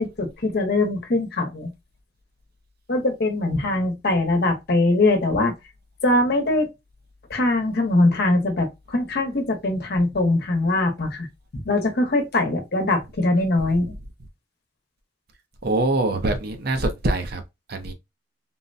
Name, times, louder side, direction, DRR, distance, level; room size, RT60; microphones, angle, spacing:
voice 1, 0.0-1.7 2.9-5.5 6.0-6.7 7.3-11.3 11.6-13.9, left 2 dB, 60° left, 0.9 m, -22 dB
voice 2, 15.6-17.4 17.7-17.9, right 2 dB, 55° right, 0.6 m, -23 dB
3.8 x 2.1 x 2.5 m
head